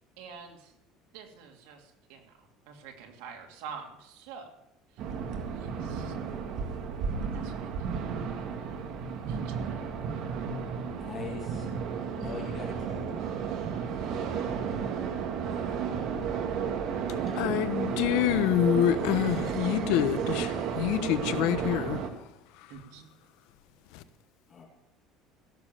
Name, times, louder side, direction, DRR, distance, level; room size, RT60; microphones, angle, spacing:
voice 1, 0.2-0.7 1.1-4.5 4.9-5.0 5.5-6.1 7.3-8.1 9.3-9.8 22.7-23.1, right 6 dB, 85° right, 2.8 m, -47 dB
sound 1, 5.0-22.1, right 6 dB, 55° right, 1.7 m, -33 dB
voice 2, 10.8-11.7 12.2-13.3 24.5-24.7, left 4 dB, 30° left, 2.5 m, -41 dB
voice 3, 17.3-22.0 23.9-24.0, left 12 dB, 75° left, 1.0 m, -27 dB
16.5 x 7.3 x 7.7 m
cardioid pair, 155°, 0 cm